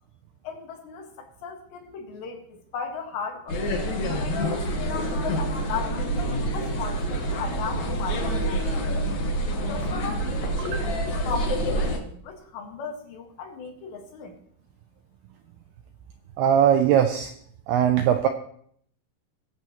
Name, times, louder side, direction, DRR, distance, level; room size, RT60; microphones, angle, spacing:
voice 1, 0.4-3.6 4.2-9.0 9.7-10.8 11.2-14.4, left 6 dB, 75° left, 2 dB, 3.7 m, -37 dB
sound 1, 3.5-12.0, right 1 dB, 60° left, 2.0 m, -27 dB
voice 2, 16.4-17.3 17.7-18.3, right 9 dB, 90° right, 6 dB, 2.3 m, -20 dB
22.5 x 7.7 x 3.0 m, 0.64 s
omnidirectional pair, 5.2 m